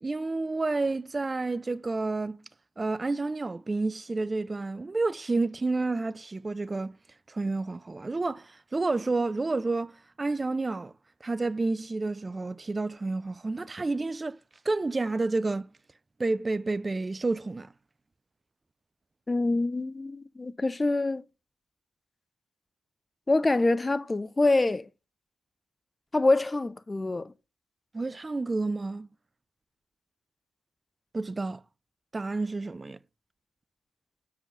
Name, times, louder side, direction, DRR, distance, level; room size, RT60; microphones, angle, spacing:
voice 1, 0.0-2.4 2.8-7.0 7.3-10.9 11.2-14.4 14.7-15.7 16.2-17.7 27.9-29.1 31.1-31.6 32.1-33.0, right 3 dB, 30° right, 0.4 m, -30 dB
voice 2, 19.3-21.2 23.3-24.9 26.1-27.3, left 2 dB, 25° left, 0.6 m, -25 dB
7.1 x 4.8 x 5.4 m
hypercardioid pair, 40°, 0 cm